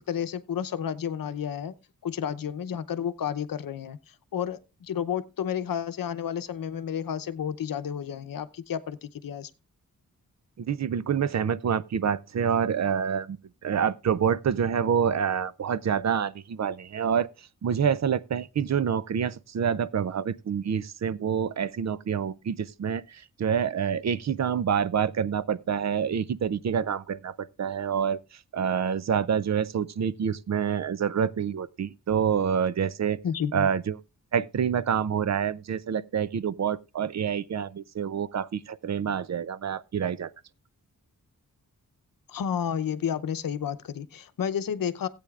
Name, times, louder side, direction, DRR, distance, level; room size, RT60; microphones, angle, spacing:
voice 1, 0.0-1.7 2.0-4.0 4.3-9.5 33.2-33.7 42.3-45.1, left 8 dB, 80° left, 0.8 m, -31 dB
voice 2, 10.6-17.3 17.6-28.2 28.5-33.2 33.5-34.0 34.3-40.3, right 7 dB, 55° right, 0.5 m, -27 dB
17.0 x 8.6 x 2.4 m
wide cardioid pair, 165°, 34 cm